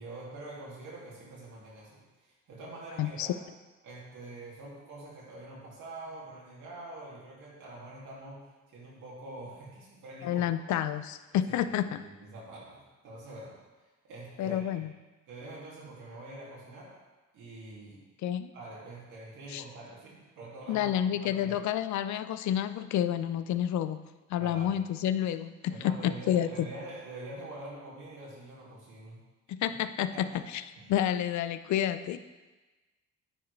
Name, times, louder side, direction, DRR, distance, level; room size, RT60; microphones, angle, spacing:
voice 1, 0.0-3.4 3.8-10.5 11.5-13.6 14.0-14.8 15.3-16.9 17.3-18.0 18.5-21.6 24.4-24.8 25.7-29.2 29.7-29.8 30.1-30.2 30.7-30.9, right 2 dB, 80° right, -5 dB, 2.5 m, -45 dB
voice 2, 10.2-12.0 14.4-14.9 18.2-18.5 19.5-19.6 20.7-24.0 24.3-26.7 29.5-30.6 30.9-32.2, left 10 dB, 70° left, 12 dB, 0.4 m, -29 dB
9.7 x 4.8 x 3.2 m, 1.2 s
cardioid pair, 90°, 30 cm